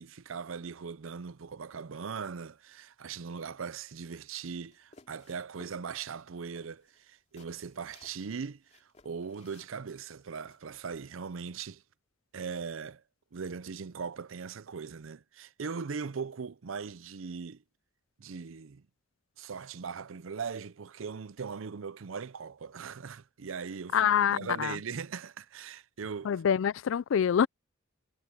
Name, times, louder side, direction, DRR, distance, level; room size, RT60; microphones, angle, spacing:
voice 1, 0.0-11.8 12.3-13.0 13.3-17.6 18.2-18.9 19.4-26.4, right 5 dB, 75° right, 0.6 m, -40 dB
sound 1, 4.6-5.8 6.2-6.3 6.6-8.3 8.7-10.6, left 3 dB, 35° left, 2.6 m, -60 dB
voice 2, 23.9-24.7 26.3-27.5, left 8 dB, 70° left, 0.4 m, -26 dB
head